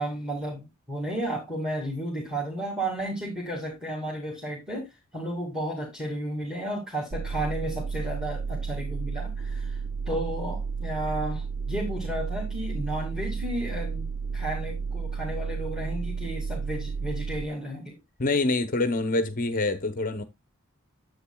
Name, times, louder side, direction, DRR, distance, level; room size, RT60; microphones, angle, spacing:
voice 1, 0.0-18.0, right 1 dB, 5° right, 2.2 m, -33 dB
sound 1, 7.1-17.5, right 5 dB, 55° right, 0.5 m, -32 dB
voice 2, 18.2-20.2, left 2 dB, 40° left, 0.8 m, -26 dB
10.0 x 8.0 x 2.2 m
head